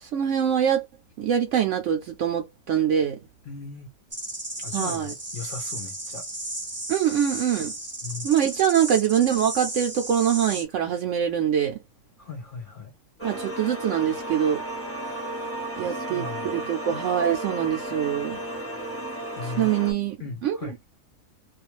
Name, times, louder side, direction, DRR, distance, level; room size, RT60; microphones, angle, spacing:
voice 1, 0.0-0.8 1.2-3.2 4.7-5.1 6.9-7.7 8.2-11.8 13.2-14.6 15.8-18.4 19.6-20.2 20.4-20.6, right 9 dB, 70° right, 0.9 m, -24 dB
voice 2, 3.4-3.9 4.6-6.2 8.0-8.3 12.2-12.9 15.8-16.7 19.4-19.9 20.2-20.8, left 4 dB, 55° left, 0.6 m, -38 dB
sound 1, 4.1-10.6, right 1 dB, 25° right, 0.3 m, -34 dB
sound 2, 13.2-19.9, right 1 dB, 10° left, 0.7 m, -33 dB
2.4 x 2.3 x 3.0 m
omnidirectional pair, 1.4 m